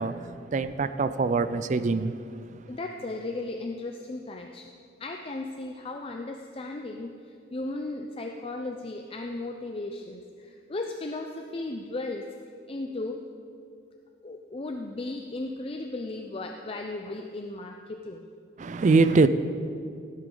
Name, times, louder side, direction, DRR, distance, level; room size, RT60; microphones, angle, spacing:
voice 1, 0.0-2.1 18.6-19.3, right 3 dB, 40° right, 0.4 m, -23 dB
voice 2, 2.7-4.7 5.0-12.3 12.7-13.2 14.2-18.2, left 2 dB, 30° left, 0.5 m, -36 dB
16.0 x 8.3 x 3.8 m
head